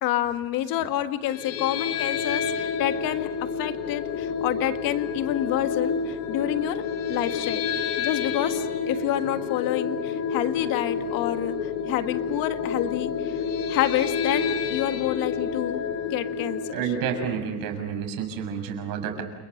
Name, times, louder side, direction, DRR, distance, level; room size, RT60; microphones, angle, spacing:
voice 1, 0.0-7.6 8.0-13.4 13.7-16.7, left 12 dB, 65° left, 8 dB, 1.8 m, -28 dB
sound 1, 1.2-17.4, left 6 dB, 85° left, 4.2 m, -29 dB
voice 2, 16.7-19.2, right 7 dB, 65° right, 6 dB, 6.4 m, -30 dB
30.0 x 28.0 x 6.6 m, 1.0 s
cardioid pair, 150°, 37 cm